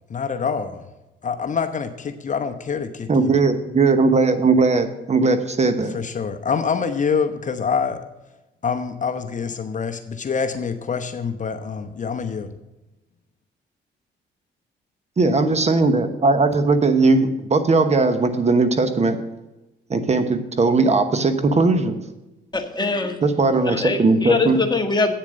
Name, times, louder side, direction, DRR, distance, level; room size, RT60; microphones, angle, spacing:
voice 1, 0.1-0.8 1.2-3.4 5.9-8.0 8.6-12.5, left 6 dB, 40° left, 7 dB, 0.9 m, -26 dB
voice 2, 3.1-6.0 15.2-19.2 19.9-22.0 23.2-24.6, right 3 dB, 35° right, 9 dB, 1.1 m, -18 dB
voice 3, 22.5-23.2 23.6-25.2, left 3 dB, 20° left, 4 dB, 1.5 m, -22 dB
8.7 x 7.3 x 6.4 m, 1.0 s
cardioid pair, 90°, 20 cm